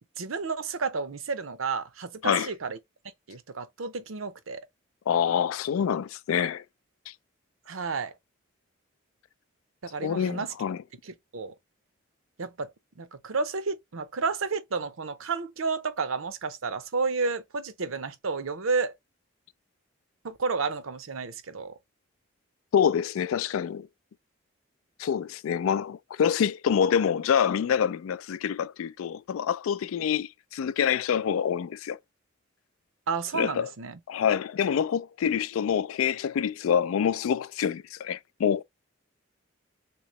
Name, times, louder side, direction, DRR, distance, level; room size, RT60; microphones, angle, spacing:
voice 1, 0.2-2.8 3.3-4.6 7.7-8.1 9.8-10.5 11.0-11.5 12.4-12.7 13.0-18.9 20.2-21.8 33.1-34.0, right 4 dB, 80° right, 0.7 m, -31 dB
voice 2, 5.1-6.6 7.1-7.2 10.0-10.8 22.7-23.9 25.0-32.0 33.3-33.7 34.1-38.6, left 8 dB, 80° left, 0.3 m, -26 dB
3.0 x 2.8 x 3.0 m
head